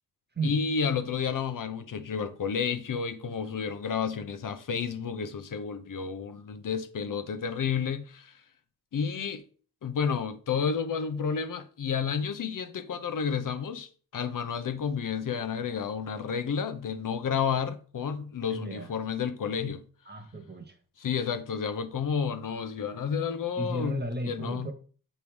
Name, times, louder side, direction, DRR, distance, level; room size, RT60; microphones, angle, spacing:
voice 1, 0.4-8.4 8.9-9.4 9.8-19.8 21.0-24.7, left 6 dB, 60° left, 0.8 m, -31 dB
voice 2, 18.5-18.9 20.0-20.8 23.6-24.7, right 1 dB, 25° right, 1.3 m, -34 dB
7.0 x 3.5 x 4.7 m
cardioid pair, 75°, 36 cm